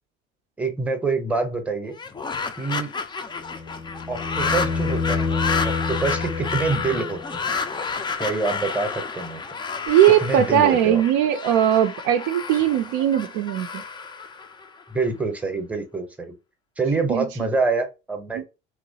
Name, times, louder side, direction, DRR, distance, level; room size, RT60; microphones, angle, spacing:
voice 1, 0.6-1.9 2.6-2.9 4.1-7.4 8.2-9.4 10.2-11.0 14.9-16.4 16.8-18.4, right 3 dB, 5° right, 0.7 m, -26 dB
sound 1, 1.9-15.1, left 5 dB, 15° left, 0.3 m, -30 dB
sound 2, 3.4-7.5 9.9-10.0, left 4 dB, 90° left, 0.7 m, -28 dB
voice 2, 9.9-13.8 17.1-17.3 18.3-18.4, right 11 dB, 60° right, 0.5 m, -19 dB
3.0 x 2.4 x 2.7 m
hypercardioid pair, 55°, 34 cm